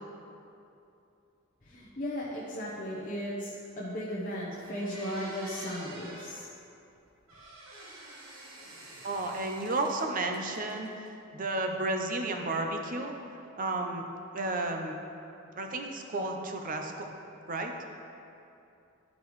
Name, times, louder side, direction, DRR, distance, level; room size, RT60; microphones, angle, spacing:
voice 1, 1.6-6.5, equal, 40° left, -6 dB, 0.8 m, -36 dB
sound 1, 4.2-4.3 4.6-6.4 7.3-10.1 10.3-11.1, right 1 dB, 75° right, 1.4 m, -47 dB
voice 2, 9.0-11.1 11.3-13.1 13.6-14.0 14.3-15.0 15.6-17.1 17.5-17.7, right 2 dB, 40° right, 3 dB, 0.6 m, -32 dB
12.5 x 5.2 x 3.1 m, 2.7 s
head